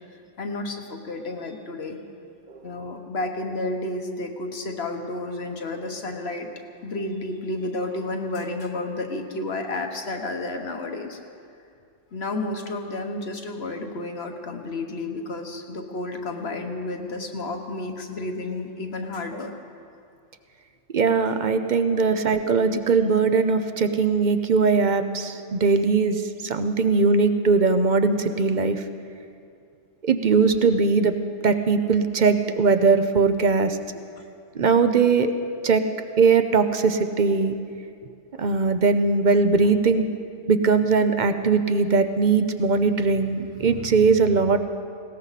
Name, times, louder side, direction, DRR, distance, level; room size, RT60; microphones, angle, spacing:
voice 1, 0.4-2.0 2.6-6.5 6.8-11.2 12.1-19.5, left 2 dB, 55° left, 4 dB, 1.5 m, -31 dB
voice 2, 20.9-28.8 30.0-31.1 31.4-33.8 34.5-35.3 35.6-35.8 36.2-37.6 38.4-40.1 40.5-44.6, right 4 dB, 45° right, 9 dB, 0.7 m, -20 dB
20.0 x 17.5 x 4.1 m, 2.4 s
omnidirectional pair, 1.3 m